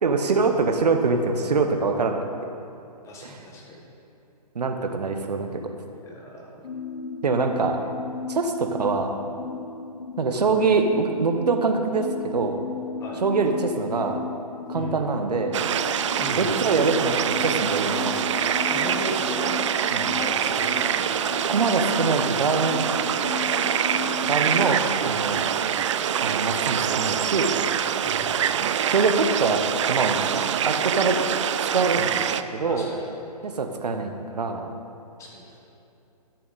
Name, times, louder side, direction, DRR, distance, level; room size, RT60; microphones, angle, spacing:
voice 1, 0.0-2.3 3.2-3.4 4.5-5.6 7.2-7.8 8.3-9.1 10.2-12.7 13.2-14.2 14.7-15.6 16.4-18.1 19.9-20.1 21.5-22.9 24.2-25.4 26.2-27.5 28.8-30.2 30.7-31.2 31.7-32.1 32.5-32.9 33.4-34.7, right 4 dB, 75° right, 5 dB, 1.1 m, -24 dB
voice 2, 3.0-3.8 5.9-6.6 13.0-13.2 14.7-15.0 16.2-16.6 18.7-19.5 20.0-21.6 25.2-25.5 28.0-28.4 32.7-33.1 35.2-35.6, left 1 dB, 15° left, -2 dB, 1.5 m, -38 dB
sound 1, 6.6-24.7, left 4 dB, 65° left, 1.2 m, -35 dB
sound 2, 15.5-32.4, right 9 dB, 50° right, 0.4 m, -25 dB
13.0 x 6.9 x 4.1 m, 2.7 s
hypercardioid pair, 135°, 21 cm